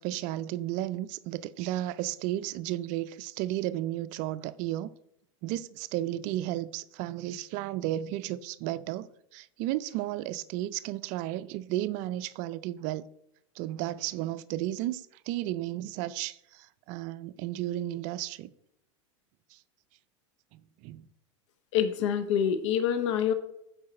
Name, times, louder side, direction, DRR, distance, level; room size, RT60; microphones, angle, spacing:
voice 1, 0.0-4.9 5.4-9.1 9.3-13.1 13.6-18.5 19.5-19.6 20.5-21.0, right 14 dB, 50° right, 0.4 m, -33 dB
voice 2, 21.7-23.3, left 8 dB, 70° left, 0.7 m, -26 dB
7.5 x 4.7 x 4.3 m
hypercardioid pair, 100°, 16 cm